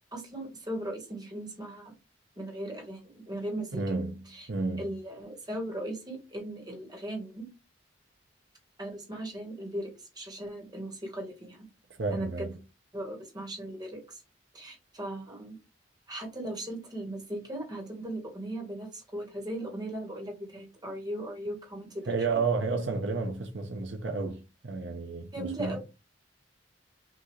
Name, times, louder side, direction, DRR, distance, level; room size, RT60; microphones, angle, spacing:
voice 1, 0.1-1.9 2.4-3.8 4.3-4.5 4.8-7.5 8.8-11.7 12.1-12.5 12.9-14.2 14.5-15.6 16.1-22.4 25.3-25.8, right 1 dB, 20° right, 1.4 m, -38 dB
voice 2, 3.7-4.2 4.5-4.8 12.0-12.5 22.1-25.8, right 4 dB, 70° right, 0.8 m, -31 dB
6.0 x 2.6 x 3.2 m
head